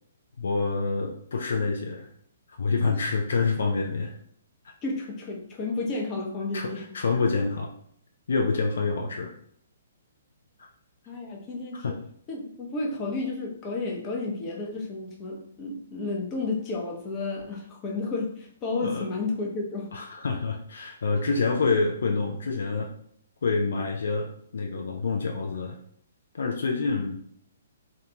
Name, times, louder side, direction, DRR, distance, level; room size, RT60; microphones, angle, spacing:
voice 1, 0.4-2.1 2.6-4.1 6.5-7.7 8.3-9.4 10.6-10.7 11.8-11.9 18.8-19.1 19.9-22.9 23.4-25.8 26.3-27.2, left 4 dB, 65° left, 1 dB, 0.3 m, -27 dB
voice 2, 4.8-6.9 11.1-12.0 12.3-19.9, left 3 dB, 25° left, -1 dB, 0.6 m, -32 dB
2.3 x 2.3 x 2.8 m, 0.65 s
figure-of-eight pair, 125°, 0 cm